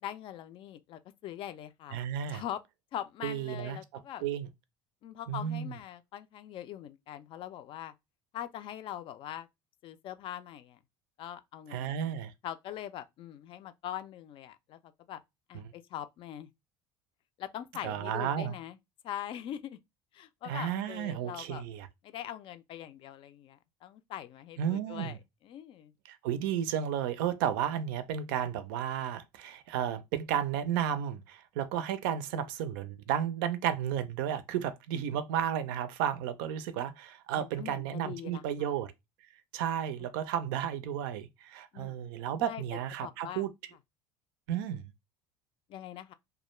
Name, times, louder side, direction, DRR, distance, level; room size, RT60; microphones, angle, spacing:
voice 1, 0.0-2.0 2.3-2.6 2.9-4.2 5.0-7.9 8.3-9.5 9.8-10.8 11.2-12.0 12.4-15.2 15.5-16.5 17.4-18.8 19.0-19.8 20.1-21.6 22.0-25.2 25.4-25.9 37.4-38.7 40.0-40.1 41.7-41.9 42.4-42.6 43.0-43.4 45.7-46.1, left 11 dB, 50° left, 0.3 m, -42 dB
voice 2, 1.9-2.4 3.2-4.5 5.3-5.7 11.7-12.3 15.5-15.6 17.8-18.5 20.4-21.9 24.6-25.2 26.1-38.9 39.5-43.5 44.5-44.8, right 9 dB, 85° right, 0.4 m, -33 dB
2.3 x 2.1 x 3.0 m
supercardioid pair, 105°, 11 cm